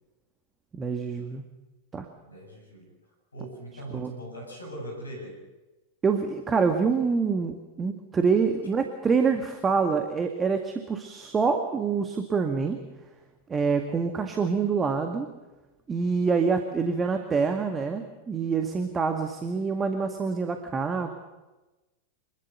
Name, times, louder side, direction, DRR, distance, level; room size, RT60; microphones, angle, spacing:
voice 1, 0.7-1.4 1.9-2.1 3.9-4.1 6.0-12.8 13.5-15.3 15.9-21.2, right 5 dB, 20° right, 6 dB, 1.9 m, -26 dB
voice 2, 2.2-2.9 3.3-5.4, right 1 dB, 75° left, 2 dB, 7.9 m, -40 dB
26.0 x 21.0 x 6.8 m, 1.1 s
figure-of-eight pair, 90°, 0 cm